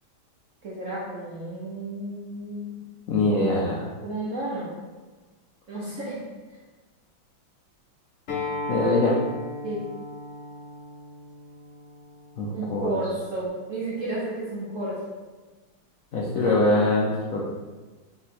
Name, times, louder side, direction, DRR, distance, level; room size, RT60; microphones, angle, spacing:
voice 1, 0.6-2.8 4.0-4.7 5.7-6.2 9.6-9.8 12.5-15.0, right 2 dB, 55° right, -7 dB, 0.9 m, -32 dB
voice 2, 3.1-3.9 8.7-9.1 12.4-12.9 16.1-17.4, left 2 dB, 85° left, -4 dB, 0.7 m, -23 dB
Acoustic guitar, 8.3-13.5, left 2 dB, 45° left, 1.0 m, -36 dB
3.7 x 3.1 x 4.2 m, 1.3 s
omnidirectional pair, 2.3 m